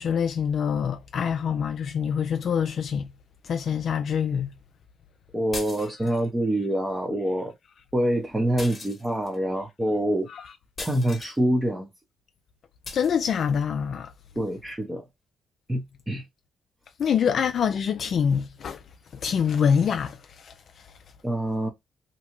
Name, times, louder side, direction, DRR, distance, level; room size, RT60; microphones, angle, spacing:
voice 1, 0.0-3.1 3.4-4.5 10.3-10.5 12.9-14.1 17.0-18.8 19.1-20.9, left 7 dB, 60° left, 0.3 m, -25 dB
voice 2, 5.3-7.5 7.9-10.3 10.8-11.9 14.4-15.0 15.7-16.2 21.2-21.7, right 1 dB, 15° right, 0.7 m, -26 dB
sound 1, 5.5-6.3 8.6-9.4 10.8-11.4 12.8-13.1, left 3 dB, 30° left, 1.0 m, -38 dB
2.8 x 2.3 x 2.9 m
cardioid pair, 90°, 0 cm